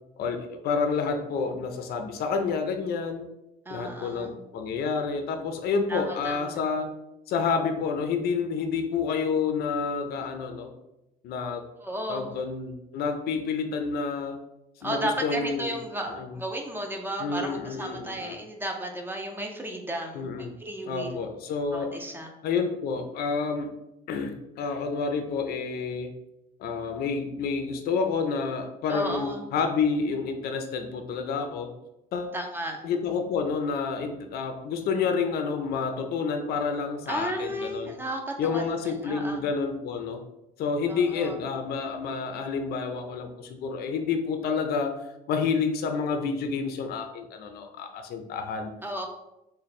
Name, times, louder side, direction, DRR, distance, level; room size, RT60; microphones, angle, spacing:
voice 1, 0.2-3.3 3.7-6.9 7.3-10.7 11.2-11.6 12.1-14.4 14.8-15.8 16.1-16.3 17.2-18.4 20.1-20.5 20.9-22.0 22.4-23.7 24.1-26.1 26.6-31.7 32.1-32.3 32.8-37.9 38.4-40.2 40.6-44.9 45.3-48.7, left 5 dB, 65° left, 6 dB, 0.5 m, -29 dB
voice 2, 3.7-4.3 5.9-6.6 11.8-12.3 14.8-21.2 21.7-22.3 28.9-29.4 32.3-32.8 37.1-39.4 40.9-41.4 48.8-49.1, right 1 dB, 10° right, 2 dB, 0.6 m, -34 dB
3.1 x 2.2 x 4.1 m, 0.90 s
cardioid pair, 110°, 17 cm